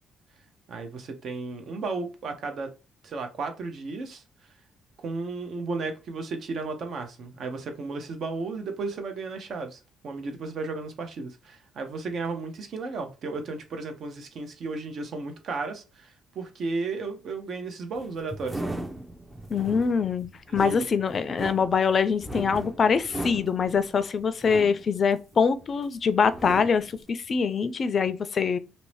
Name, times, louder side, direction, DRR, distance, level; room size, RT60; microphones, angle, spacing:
voice 1, 0.7-2.7 3.0-4.2 5.0-18.6 20.5-20.9, right 3 dB, 60° right, 0.7 m, -34 dB
sound 1, 17.9-25.8 26.2-27.0, right 1 dB, 15° right, 0.5 m, -38 dB
voice 2, 19.5-28.6, left 6 dB, 45° left, 0.4 m, -24 dB
2.6 x 2.0 x 3.2 m
cardioid pair, 80°, 0 cm